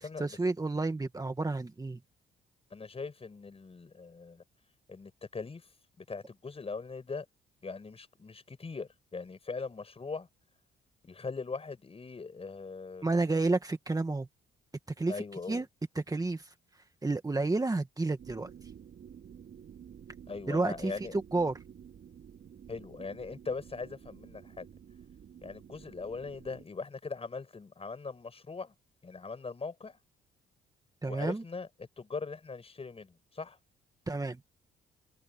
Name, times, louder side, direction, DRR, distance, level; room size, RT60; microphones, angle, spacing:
voice 1, 0.0-2.0 13.0-14.3 15.0-15.2 15.5-15.7 16.0-16.5 17.0-18.5 20.5-21.6 31.0-31.4 34.1-34.4, right 3 dB, 20° right, 1.8 m, -30 dB
voice 2, 2.7-4.4 4.9-5.7 6.0-7.3 7.6-10.3 11.0-13.1 15.1-15.6 20.3-21.1 22.7-24.7 25.4-28.7 29.0-30.0 31.0-31.7 32.0-33.6, left 4 dB, 30° left, 5.2 m, -40 dB
sound 1, 18.2-26.6, right 8 dB, 60° right, 4.7 m, -51 dB
cardioid pair, 90°, 20 cm